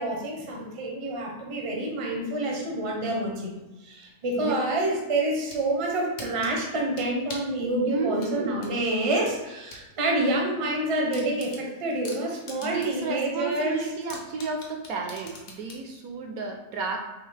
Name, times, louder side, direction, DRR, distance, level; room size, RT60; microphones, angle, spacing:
voice 1, 0.0-3.5 3.8-13.8, right 1 dB, 35° right, -1 dB, 0.6 m, -27 dB
sound 1, 5.2-5.6 6.2-7.6 8.2-9.9 10.2-10.3 10.7-10.8 11.1-13.1 13.4-13.5 14.1-15.8, left 3 dB, 55° left, 1.0 m, -43 dB
voice 2, 7.9-8.7 12.6-17.0, right 4 dB, 70° right, 2 dB, 1.0 m, -32 dB
4.6 x 2.9 x 3.3 m, 1.1 s
omnidirectional pair, 1.7 m